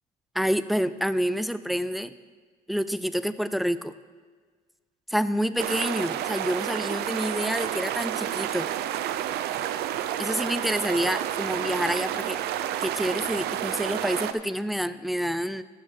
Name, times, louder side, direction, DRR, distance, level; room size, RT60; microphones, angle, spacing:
voice 1, 0.4-2.1 2.7-3.9 5.1-8.7 10.2-12.4 12.8-15.6, equal, ahead, 14 dB, 0.3 m, -28 dB
sound 1, 5.6-14.3, right 11 dB, 75° right, 0.5 m, -30 dB
13.0 x 6.3 x 4.7 m, 1.5 s
cardioid pair, 110°, 17 cm